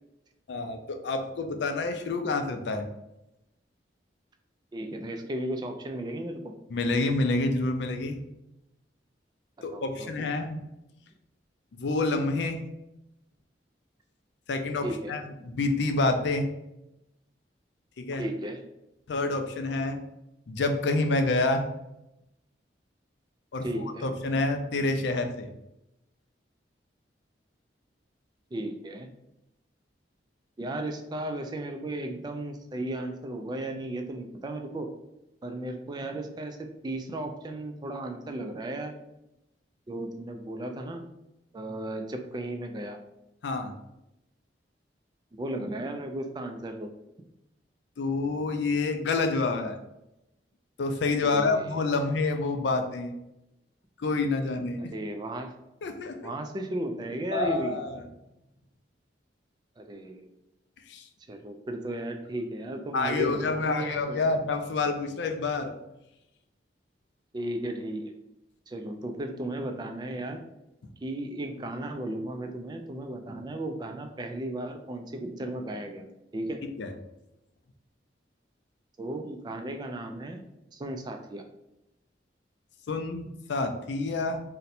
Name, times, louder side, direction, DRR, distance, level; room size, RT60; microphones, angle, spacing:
voice 1, 0.5-2.9 6.7-8.2 9.6-10.6 11.7-12.6 14.5-16.5 18.0-18.2 19.1-20.0 20.5-21.7 23.5-25.5 43.4-43.7 48.0-49.8 50.8-53.1 54.0-54.9 55.8-56.3 57.3-58.0 60.9-61.0 62.9-65.7 76.8-76.9 82.9-84.4, left 3 dB, 75° left, 6 dB, 0.4 m, -28 dB
voice 2, 4.7-6.5 9.6-10.1 14.8-15.1 18.1-18.6 23.6-24.1 28.5-29.1 30.6-34.9 35.4-38.9 39.9-41.0 41.5-43.0 45.4-46.9 51.2-51.7 54.8-55.5 56.2-57.8 59.8-60.3 61.3-64.2 67.3-68.1 68.7-70.4 71.0-76.1 76.3-76.6 79.0-80.4 80.7-81.4, right 1 dB, 25° right, 6 dB, 0.3 m, -35 dB
2.7 x 2.1 x 4.0 m, 0.88 s
head